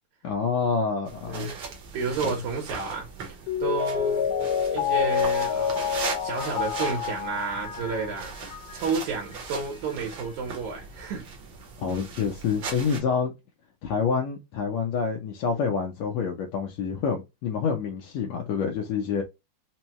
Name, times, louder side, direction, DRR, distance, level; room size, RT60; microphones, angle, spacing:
voice 1, 0.2-1.5 2.2-2.3 11.8-13.3 13.8-19.2, left 6 dB, 75° left, 1.9 m, -27 dB
sound 1, 1.1-13.0, right 5 dB, 60° right, 1.4 m, -39 dB
voice 2, 1.3-4.3 4.7-8.3 8.7-11.2, right 5 dB, 80° right, 2.4 m, -31 dB
Mallet percussion, 3.5-9.0 9.3-9.4, left 8 dB, 90° left, 2.2 m, -28 dB
5.4 x 2.2 x 2.9 m
omnidirectional pair, 3.4 m